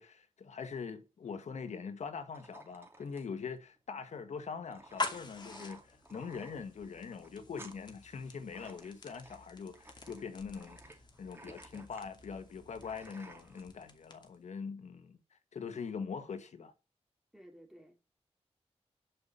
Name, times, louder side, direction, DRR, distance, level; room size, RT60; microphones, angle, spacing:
voice 1, 0.0-16.7, left 5 dB, 85° left, 1.6 m, -43 dB
sound 1, 2.3-13.6, right 2 dB, 20° right, 2.9 m, -56 dB
sound 2, 4.8-14.5, left 3 dB, 40° left, 2.5 m, -46 dB
voice 2, 17.3-18.0, equal, ahead, 3.0 m, -55 dB
11.0 x 6.0 x 8.8 m
wide cardioid pair, 130°, 12 cm